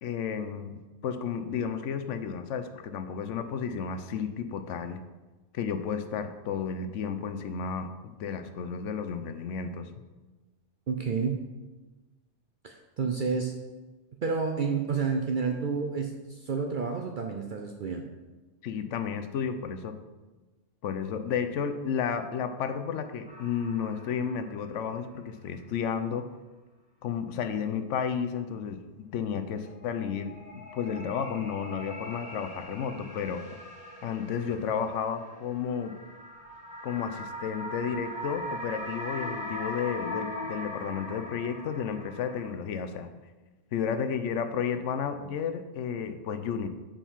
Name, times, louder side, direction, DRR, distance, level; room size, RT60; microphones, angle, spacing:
voice 1, 0.0-5.0 5.5-9.9 18.6-19.9 20.8-26.2 27.0-28.8 29.1-33.4 34.0-36.0 36.8-43.1 43.7-46.7, left 7 dB, 75° left, 9 dB, 0.9 m, -32 dB
voice 2, 10.9-11.4 12.6-13.5 14.2-18.0, right 5 dB, 55° right, 3 dB, 0.6 m, -30 dB
sound 1, 23.3-24.9 25.2-25.3 29.7-42.5, left 1 dB, 5° right, 1.1 m, -41 dB
5.2 x 5.0 x 5.6 m, 1.2 s
omnidirectional pair, 1.3 m